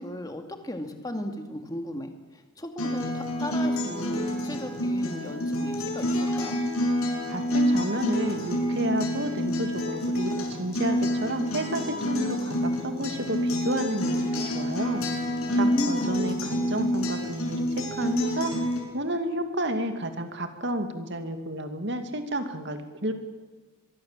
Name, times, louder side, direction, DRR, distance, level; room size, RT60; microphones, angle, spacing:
voice 1, 0.0-6.6 15.5-16.2, left 1 dB, 15° left, 5 dB, 2.4 m, -35 dB
Acoustic guitar, 2.8-18.8, left 1 dB, 80° left, 7.5 m, -28 dB
voice 2, 7.3-15.0 15.5-18.6 18.9-23.1, right 1 dB, 50° right, 7 dB, 2.5 m, -31 dB
23.5 x 23.0 x 7.6 m, 1.4 s
head